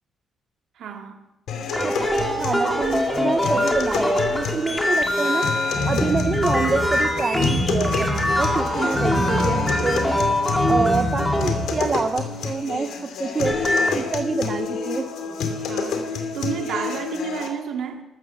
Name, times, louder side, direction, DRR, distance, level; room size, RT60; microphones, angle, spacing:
voice 1, 0.8-1.2 15.7-18.0, right 7 dB, 65° right, 2.3 m, -31 dB
sound 1, 1.5-17.5, left 5 dB, 70° left, 2.4 m, -29 dB
sound 2, 1.7-12.2 13.3-14.0, left 1 dB, 5° left, 2.4 m, -24 dB
voice 2, 2.4-5.5 5.9-10.0 10.7-13.6 13.9-15.1, right 4 dB, 25° right, 0.6 m, -26 dB
sound 3, 5.7-12.0, left 1 dB, 30° left, 5.4 m, -27 dB
14.0 x 13.0 x 6.9 m
cardioid pair, 160°, 0 cm